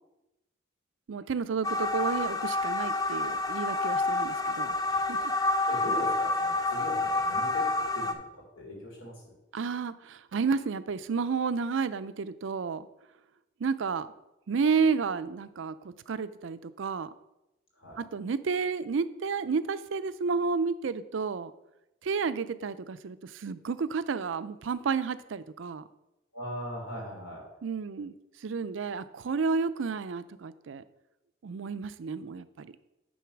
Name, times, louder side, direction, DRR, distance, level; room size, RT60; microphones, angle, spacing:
voice 1, 1.1-5.3 9.5-12.9 13.6-14.1 14.5-17.1 18.0-21.5 22.0-25.8 27.6-28.1 28.4-30.8 31.4-32.7, right 5 dB, 75° right, 14 dB, 0.4 m, -31 dB
sound 1, 1.6-8.1, left 2 dB, 20° left, 0.5 m, -28 dB
voice 2, 5.7-7.6 7.9-8.2 8.6-9.1 17.8-18.0 26.3-27.4, equal, 90° left, -1 dB, 3.0 m, -39 dB
9.3 x 4.0 x 5.9 m, 0.92 s
head